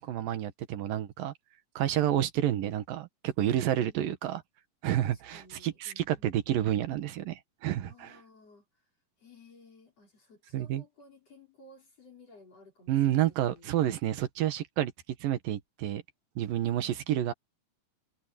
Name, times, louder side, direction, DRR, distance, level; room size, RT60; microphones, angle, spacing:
voice 1, 0.0-1.3 1.8-4.4 4.8-8.1 10.5-10.8 12.9-14.9 15.2-16.0 16.4-17.3, right 12 dB, 85° right, 3.2 m, -29 dB
voice 2, 3.7-4.0 5.1-6.3 7.9-8.8 9.2-13.7 16.6-17.0, left 2 dB, 45° left, 5.4 m, -57 dB
omnidirectional pair, 3.9 m